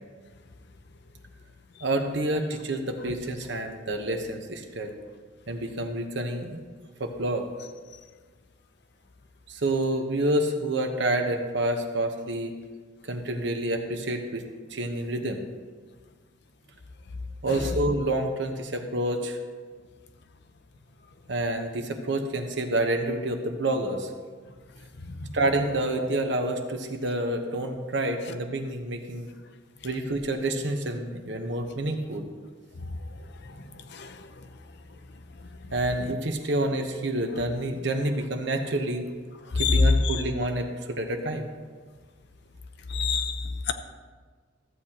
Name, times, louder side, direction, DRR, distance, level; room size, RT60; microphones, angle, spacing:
voice 1, 1.8-4.9 5.5-6.6 7.0-7.4 9.5-12.5 13.0-14.5 14.7-15.5 17.4-19.4 21.3-24.1 25.3-29.3 29.8-32.3 35.7-39.1 39.5-41.5, right 1 dB, 65° right, 1.0 m, -28 dB
voice 2, 39.6-39.9 42.9-43.7, left 4 dB, 60° left, 0.6 m, -23 dB
14.0 x 8.1 x 2.9 m
head